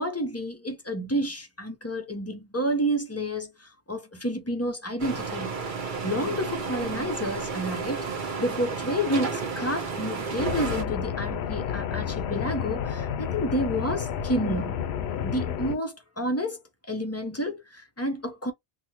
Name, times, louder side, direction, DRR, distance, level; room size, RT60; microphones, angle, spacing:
voice 1, 0.0-5.5 6.0-14.8 15.2-16.6 16.9-18.5, equal, 20° left, 0.5 m, -30 dB
sound 1, 5.0-10.8, right 4 dB, 50° right, 1.0 m, -32 dB
sound 2, 10.4-15.8, left 8 dB, 75° left, 0.8 m, -30 dB
3.6 x 2.1 x 2.9 m
omnidirectional pair, 1.1 m